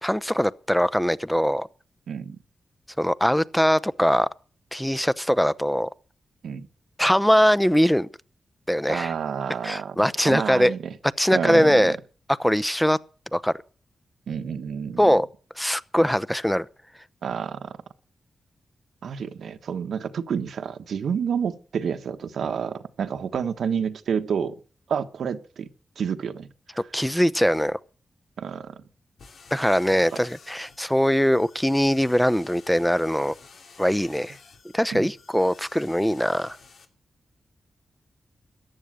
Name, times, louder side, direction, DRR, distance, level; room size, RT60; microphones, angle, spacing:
voice 1, 0.0-1.7 3.0-4.3 4.7-5.9 7.0-8.1 8.7-9.1 9.6-10.7 11.2-12.0 12.4-13.0 13.3-13.5 15.0-15.3 15.6-16.7 26.9-27.8 29.5-33.3 33.8-34.4 34.7-36.6, equal, 5° left, 0.8 m, -21 dB
voice 2, 2.1-2.4 6.4-6.7 8.9-10.9 11.3-12.0 14.3-15.2 17.2-17.8 19.0-24.6 24.9-25.7 26.0-26.5 28.4-28.8 34.9-35.1, right 7 dB, 80° right, 1.3 m, -29 dB
sound 1, 29.2-36.8, left 5 dB, 75° left, 2.8 m, -51 dB
14.5 x 10.0 x 6.4 m
cardioid pair, 55°, 0 cm